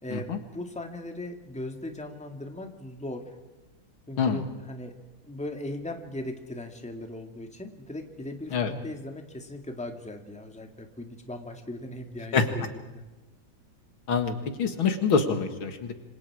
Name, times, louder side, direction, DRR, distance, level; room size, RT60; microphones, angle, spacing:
voice 1, 0.0-3.2 4.1-4.9 5.2-13.0, left 1 dB, 5° left, 4 dB, 1.9 m, -38 dB
voice 2, 14.1-15.9, left 5 dB, 80° left, 7 dB, 2.6 m, -25 dB
27.0 x 26.0 x 4.9 m, 1.1 s
omnidirectional pair, 2.2 m